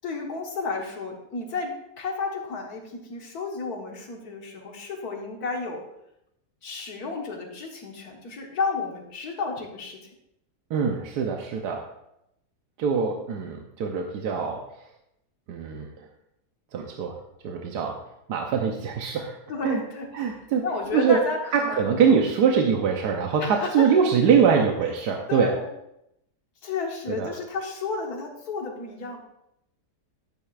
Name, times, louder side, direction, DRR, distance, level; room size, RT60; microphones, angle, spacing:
voice 1, 0.0-5.8 6.6-10.1 19.5-20.4 20.6-22.2 23.4-23.9 25.3-25.7 26.6-29.2, left 4 dB, 70° left, 1 dB, 1.9 m, -32 dB
voice 2, 10.7-11.8 12.8-14.6 15.5-15.9 16.7-17.2 17.4-18.0 18.3-19.4 19.6-19.8 20.1-20.6 20.9-21.2 21.5-25.5 27.1-27.3, right 6 dB, 80° right, 2 dB, 1.4 m, -23 dB
11.5 x 9.0 x 2.5 m, 0.81 s
omnidirectional pair, 1.7 m